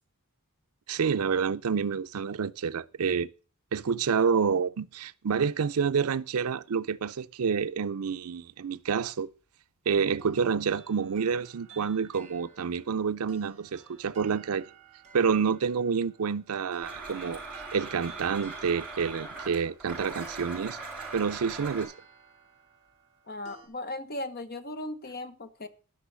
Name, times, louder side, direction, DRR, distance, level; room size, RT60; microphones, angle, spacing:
voice 1, 0.9-3.3 3.7-9.3 9.9-14.7 15.1-17.4 17.7-20.8 21.1-21.9, right 6 dB, 85° right, 0.5 m, -28 dB
sound 1, 10.2-23.7, right 6 dB, 30° right, 3.3 m, -54 dB
Domestic sounds home sounds, 16.8-21.9, right 3 dB, 5° right, 4.7 m, -40 dB
voice 2, 23.3-25.7, left 2 dB, 45° left, 1.1 m, -37 dB
11.5 x 6.2 x 6.2 m
head